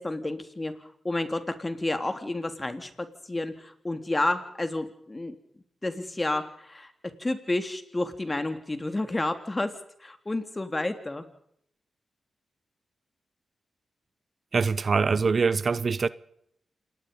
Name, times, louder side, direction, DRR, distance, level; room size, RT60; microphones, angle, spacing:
voice 1, 0.0-5.3 5.8-6.9 7.2-9.7 10.0-11.3, left 2 dB, 25° left, 3.5 m, -30 dB
voice 2, 14.5-16.1, right 5 dB, 55° right, 0.8 m, -24 dB
27.5 x 19.5 x 5.5 m
supercardioid pair, 45°, 0 cm